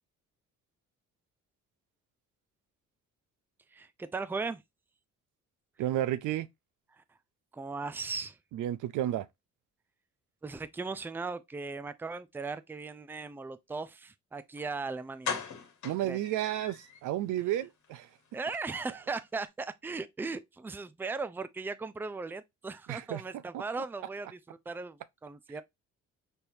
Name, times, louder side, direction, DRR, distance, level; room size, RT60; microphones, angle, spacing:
voice 1, 3.7-4.6 7.0-7.1 7.5-8.4 10.4-15.4 16.0-16.2 18.3-25.6, right 4 dB, 5° right, 0.4 m, -38 dB
voice 2, 5.8-6.5 8.5-9.3 15.8-18.1 22.9-23.2 23.5-23.6, right 13 dB, 80° right, 0.5 m, -32 dB
sound 1, 14.6-14.7 15.2-17.0 17.4-17.5 17.8-18.0 18.2-18.3, left 6 dB, 70° left, 1.3 m, -38 dB
4.4 x 3.4 x 2.6 m
cardioid pair, 90°, 30 cm